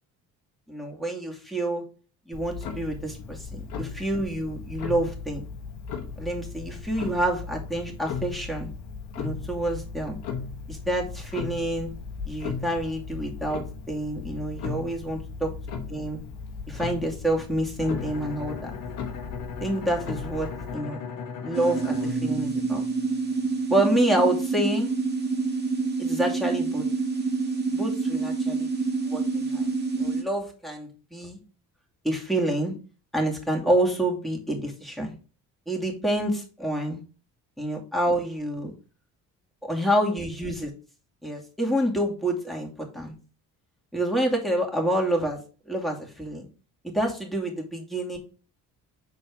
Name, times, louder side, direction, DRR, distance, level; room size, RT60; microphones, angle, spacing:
voice 1, 0.7-1.8 2.3-5.5 6.2-8.7 9.2-10.2 10.7-11.9 12.2-16.2 16.7-18.8 19.6-21.0 21.4-22.8 23.7-24.9 26.0-26.8 27.7-28.7 29.1-29.7 30.0-31.4 32.0-32.7 33.1-35.1 35.7-37.0 37.6-38.7 39.7-40.7 41.2-43.1 43.9-45.4 45.7-46.5 46.8-48.2, right 1 dB, ahead, -1 dB, 2.5 m, -28 dB
Clock, 2.3-20.7, left 5 dB, 70° left, 1.3 m, -37 dB
Bowed string instrument, 17.8-23.5, left 6 dB, 50° left, 1.4 m, -38 dB
sound 1, 21.5-30.2, right 4 dB, 25° right, 1.6 m, -27 dB
6.8 x 4.3 x 3.6 m, 0.36 s
hypercardioid pair, 55°, 40 cm